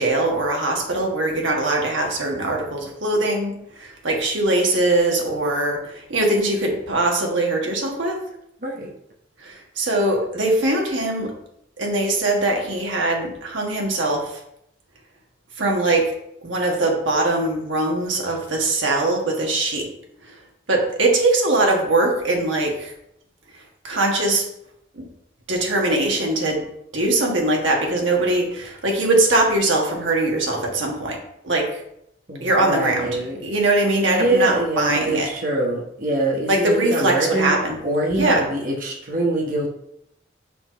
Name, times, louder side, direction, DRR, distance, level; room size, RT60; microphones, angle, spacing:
voice 1, 0.0-8.2 9.4-11.3 11.8-14.3 15.6-16.1 16.4-19.9 20.7-22.9 23.8-24.4 25.0-25.1 25.5-26.6 26.9-31.2 31.4-31.8 32.4-35.3 36.5-37.8 38.2-38.5, right 2 dB, 90° right, 0 dB, 1.5 m, -21 dB
voice 2, 32.3-33.4 34.0-37.6 37.8-39.7, right 1 dB, 45° right, -1 dB, 1.0 m, -24 dB
5.8 x 3.9 x 4.5 m, 0.76 s
head